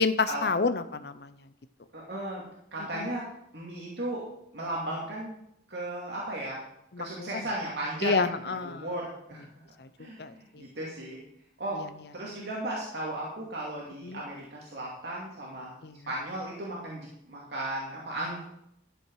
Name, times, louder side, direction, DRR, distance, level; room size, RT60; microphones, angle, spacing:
voice 1, 0.0-1.3 2.9-3.1 6.9-7.5 8.0-8.9 9.8-9.9 10.2-10.7 11.7-11.9 14.0-14.2 15.8-16.0, left 4 dB, 60° left, 12 dB, 0.6 m, -29 dB
voice 2, 1.9-2.5 2.7-3.3 3.5-4.2 4.5-5.4 5.7-6.6 7.0-9.4 10.0-11.2 11.6-11.8 12.1-15.8 16.1-18.4, right 1 dB, 70° right, -4 dB, 2.4 m, -35 dB
12.5 x 7.8 x 4.7 m, 0.76 s
head